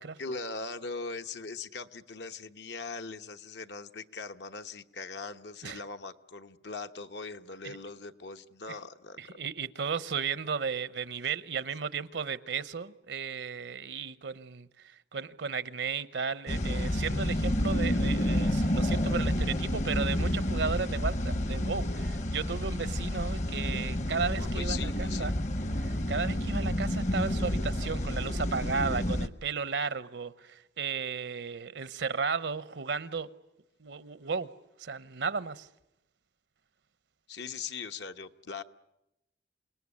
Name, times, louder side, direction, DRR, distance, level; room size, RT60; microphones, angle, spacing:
voice 1, 0.2-9.4 24.3-25.3 37.3-38.6, left 4 dB, 75° left, 1.1 m, -40 dB
voice 2, 9.2-25.3 25.7-33.3 33.8-34.5 34.8-35.7, right 5 dB, 80° right, 0.9 m, -34 dB
sound 1, 16.5-29.3, left 1 dB, 40° left, 0.9 m, -29 dB
28.0 x 19.0 x 9.8 m
head